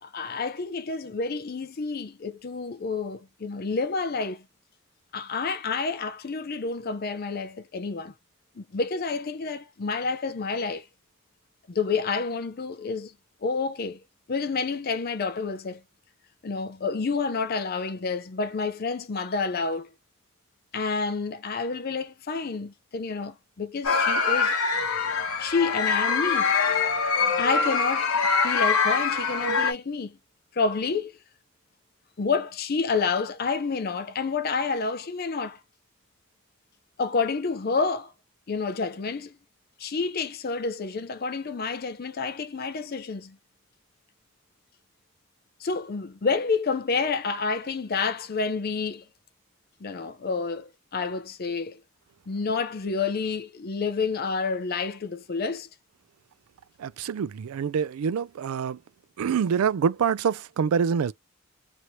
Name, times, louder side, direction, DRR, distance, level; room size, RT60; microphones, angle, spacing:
voice 1, 0.0-4.4 5.1-8.1 8.6-10.9 11.7-13.1 13.4-14.0 14.3-15.8 16.4-19.9 20.7-24.6 25.4-26.5 27.4-28.1 28.4-30.2 30.5-31.1 32.2-35.6 37.0-38.1 38.5-39.4 39.8-43.4 45.6-49.0 49.8-51.8 52.3-55.7, left 4 dB, 45° left, 0.5 m, -29 dB
sound 1, 23.8-29.7, left 5 dB, 90° left, 1.0 m, -24 dB
voice 2, 56.8-58.8 59.2-61.1, right 7 dB, 90° right, 0.4 m, -26 dB
3.0 x 2.7 x 3.0 m
head